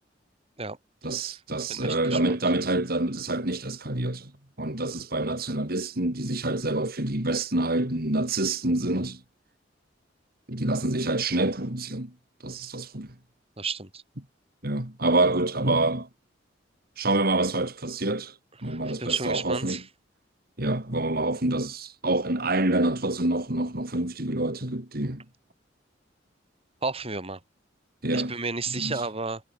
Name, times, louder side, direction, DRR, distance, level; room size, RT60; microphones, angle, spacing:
voice 1, 1.0-4.3 4.6-9.2 10.5-12.1 12.4-13.1 14.6-16.1 17.0-19.8 20.6-25.2 28.0-28.3 28.8-29.0, right 2 dB, 55° right, 3.6 m, -27 dB
voice 2, 1.7-2.2 13.6-14.0 18.6-19.8 26.8-27.4 28.1-29.4, right 4 dB, 35° right, 4.8 m, -32 dB
head